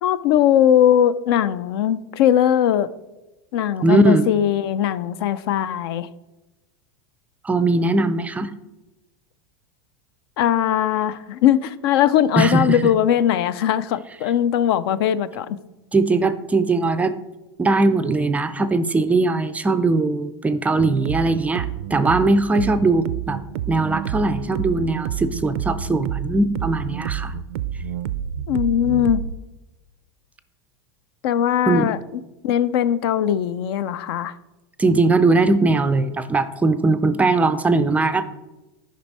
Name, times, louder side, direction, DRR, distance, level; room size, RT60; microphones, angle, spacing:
voice 1, 0.0-2.9 3.5-6.1 10.4-15.6 28.5-29.2 31.2-32.0 32.4-34.3, left 10 dB, 65° left, 0.4 m, -20 dB
voice 2, 3.8-4.3 7.4-8.5 12.4-12.8 15.9-17.2 17.6-23.4 23.7-27.3 31.7-31.9 34.8-38.2, right 3 dB, 10° right, 0.3 m, -20 dB
sound 1, 20.8-29.4, right 10 dB, 80° right, 0.4 m, -29 dB
10.5 x 5.3 x 4.1 m
supercardioid pair, 135°, 14 cm